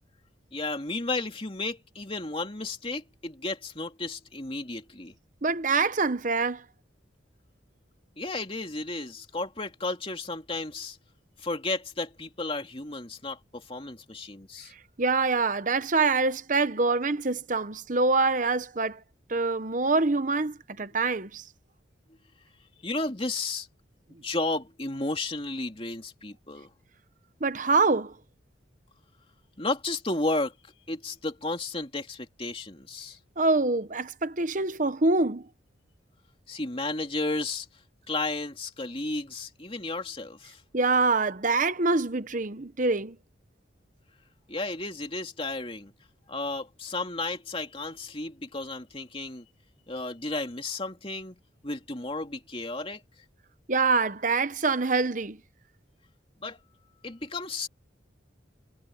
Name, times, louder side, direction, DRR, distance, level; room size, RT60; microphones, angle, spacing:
voice 1, 0.5-5.1 8.2-11.0 11.4-14.7 22.8-23.7 24.2-26.7 29.6-30.5 30.9-33.2 36.5-37.7 38.1-40.6 44.5-45.9 46.3-49.5 49.9-51.4 51.6-53.0 56.4-56.6 57.0-57.7, left 2 dB, 30° left, 2.8 m, -33 dB
voice 2, 5.4-6.6 15.0-19.0 19.3-21.4 27.4-28.1 33.4-35.4 40.7-43.2 53.7-55.4, right 3 dB, 40° right, 1.0 m, -25 dB
head